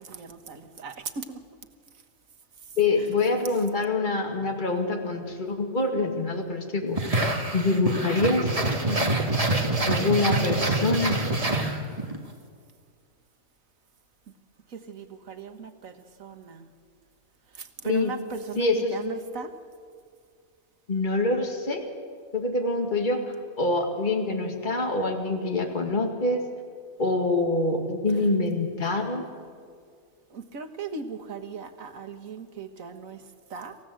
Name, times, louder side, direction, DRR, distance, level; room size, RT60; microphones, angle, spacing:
voice 1, 0.0-1.4 2.6-3.6 14.7-16.7 17.5-19.5 28.1-28.3 30.3-33.8, right 5 dB, 85° right, 6 dB, 1.8 m, -39 dB
voice 2, 2.8-8.5 8.8-9.1 9.9-11.3 17.8-18.1 18.6-18.9 20.9-21.9 22.3-26.4 27.0-29.3, left 2 dB, 35° left, 3 dB, 2.2 m, -26 dB
sound 1, 6.9-12.2, right 2 dB, 25° right, 1.9 m, -26 dB
27.0 x 15.0 x 7.8 m, 2.1 s
omnidirectional pair, 1.4 m